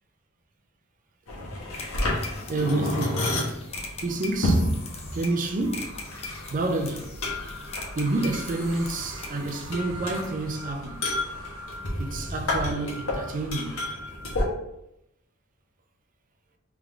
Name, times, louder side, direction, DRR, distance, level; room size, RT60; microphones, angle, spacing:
sound 1, 1.3-14.4, left 1 dB, 75° left, 1.3 m, -31 dB
sound 2, 1.7-9.7, left 4 dB, 30° left, 0.7 m, -41 dB
voice 1, 2.5-3.3 4.0-4.7 5.1-5.9 6.5-7.1 8.0-11.0 12.0-13.8, right 2 dB, 40° right, 0.5 m, -29 dB
sound 3, 3.7-13.8, right 2 dB, 65° right, 1.0 m, -46 dB
3.7 x 3.5 x 3.5 m
head